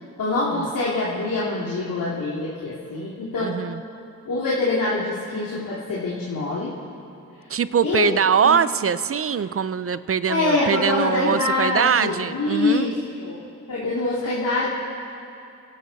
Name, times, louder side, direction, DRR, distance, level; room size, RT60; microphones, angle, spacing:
voice 1, 0.2-3.5 4.3-6.7 7.8-8.1 8.4-8.5 10.3-13.4 13.7-14.7, left 2 dB, 60° left, -7 dB, 2.8 m, -24 dB
voice 2, 3.4-3.8 7.5-12.9, right 7 dB, 40° right, 15 dB, 0.5 m, -22 dB
29.0 x 11.0 x 4.1 m, 2.6 s
supercardioid pair, 55°, 37 cm